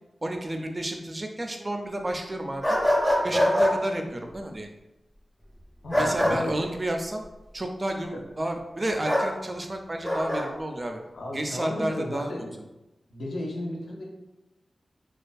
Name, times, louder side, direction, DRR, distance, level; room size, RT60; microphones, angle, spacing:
voice 1, 0.2-2.7 3.2-4.7 5.9-7.2 7.5-11.0 11.3-12.3, right 1 dB, 35° right, 4 dB, 0.3 m, -31 dB
sound 1, 2.6-3.7 5.9-6.4 9.1-9.3 10.0-10.4, left 1 dB, ahead, 0.7 m, -22 dB
voice 2, 5.8-6.6 11.1-12.5 13.1-14.0, left 1 dB, 90° left, -1 dB, 0.5 m, -34 dB
2.5 x 2.3 x 2.2 m, 0.98 s
cardioid pair, 55°, 0 cm